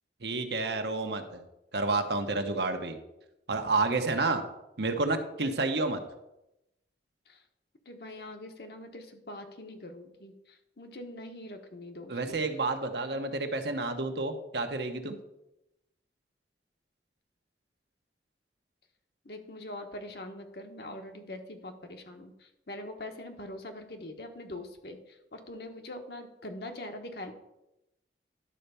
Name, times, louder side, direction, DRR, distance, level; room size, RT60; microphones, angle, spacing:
voice 1, 0.2-1.4 1.7-3.0 3.5-4.4 4.8-6.0 12.1-15.2, right 3 dB, 70° right, 6 dB, 1.1 m, -30 dB
voice 2, 7.9-12.4 19.2-25.0 25.3-27.3, left 1 dB, 60° left, 5 dB, 1.2 m, -43 dB
11.5 x 4.5 x 6.9 m, 0.90 s
head